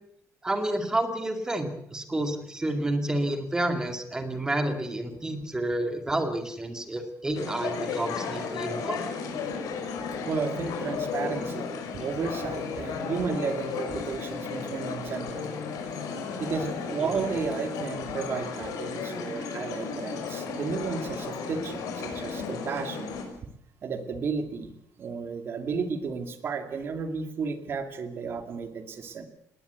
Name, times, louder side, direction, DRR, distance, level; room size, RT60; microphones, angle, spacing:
voice 1, 0.4-9.0 17.0-17.1, right 1 dB, 10° right, 7 dB, 2.3 m, -29 dB
sound 1, 7.3-23.2, left 5 dB, 80° left, 5.6 m, -34 dB
voice 2, 10.3-11.7 11.9-15.5 16.4-23.1 23.8-24.7 25.0-29.3, right 5 dB, 40° right, 8 dB, 2.3 m, -33 dB
20.0 x 18.5 x 8.1 m, 0.76 s
cardioid pair, 175°, 6 cm